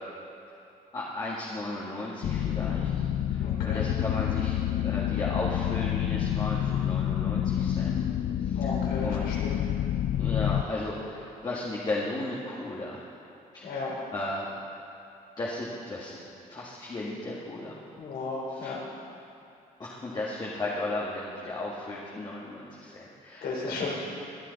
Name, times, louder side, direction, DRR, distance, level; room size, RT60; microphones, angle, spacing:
voice 1, 0.9-3.0 3.3-8.0 8.4-8.7 9.0-9.3 10.2-13.0 13.5-13.8 14.1-14.5 15.4-16.2 16.5-17.8 18.5-18.7 19.8-23.9, left 2 dB, 25° left, -5 dB, 1.7 m, -35 dB
sound 1, 2.2-10.6, left 10 dB, 55° left, 0.4 m, -28 dB
voice 2, 3.4-3.9 8.5-9.6 13.6-13.9 18.0-18.8 23.4-24.0, left 3 dB, 80° left, -3 dB, 3.7 m, -34 dB
21.0 x 10.5 x 4.1 m, 2.7 s
cardioid pair, 145°, 16 cm